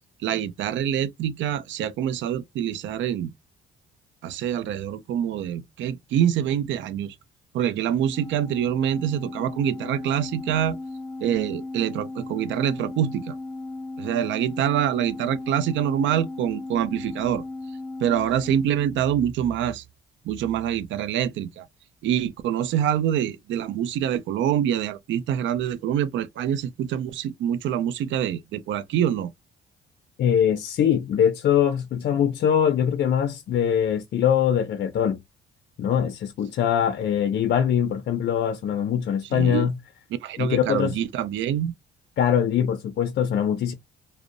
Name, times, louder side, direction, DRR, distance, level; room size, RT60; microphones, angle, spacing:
voice 1, 0.2-3.3 4.2-7.2 7.5-10.8 11.2-13.3 14.0-17.4 18.0-19.8 20.2-21.7 22.0-29.3 39.3-39.7 40.2-41.7, right 10 dB, 70° right, 0.4 m, -25 dB
Organ, 8.1-19.4, left 2 dB, 5° left, 0.7 m, -36 dB
voice 2, 30.2-35.2 35.8-39.7 40.4-41.0 42.2-43.7, left 8 dB, 60° left, 0.4 m, -22 dB
2.5 x 2.0 x 2.5 m
cardioid pair, 90°, 20 cm